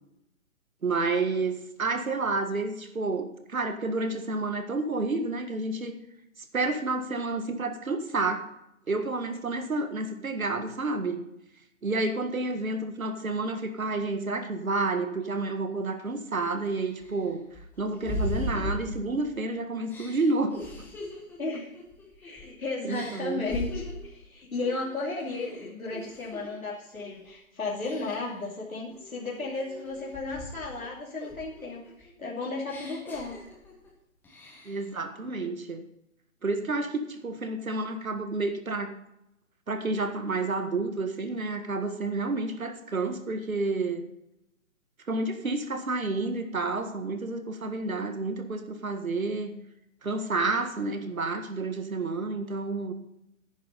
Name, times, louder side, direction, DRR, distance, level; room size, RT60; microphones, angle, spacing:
voice 1, 0.8-6.0 6.5-8.4 8.9-11.2 11.8-17.5 17.8-20.9 22.8-23.5 34.6-35.8 36.4-39.0 39.7-44.0 45.1-49.5 50.0-52.9, right 3 dB, 80° right, 8 dB, 1.7 m, -30 dB
sound 1, 16.0-16.1 16.7-19.4 19.9-22.5 22.9-24.1 24.6-24.9 25.2-26.5 26.9-27.3 27.8-28.4 28.9-30.8 31.2-33.9 34.2-34.9, left 2 dB, 5° left, 1.1 m, -39 dB
voice 2, 21.4-21.7 22.2-33.4, left 3 dB, 85° left, -4 dB, 2.9 m, -34 dB
10.5 x 10.0 x 4.1 m, 0.82 s
figure-of-eight pair, 140°, 41 cm